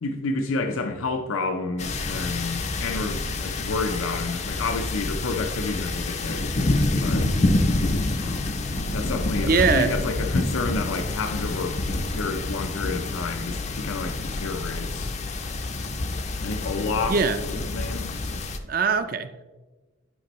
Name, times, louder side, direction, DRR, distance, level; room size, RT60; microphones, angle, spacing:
voice 1, 0.0-6.5 7.0-7.3 8.2-15.1 16.4-17.2 17.5-18.2, left 3 dB, 85° left, 6 dB, 0.5 m, -30 dB
sound 1, 1.8-18.6, left 2 dB, 35° left, 0.5 m, -27 dB
voice 2, 9.4-10.0 17.1-17.4 18.7-19.4, right 5 dB, 45° right, 10 dB, 0.5 m, -22 dB
10.0 x 5.2 x 3.0 m, 1.2 s
head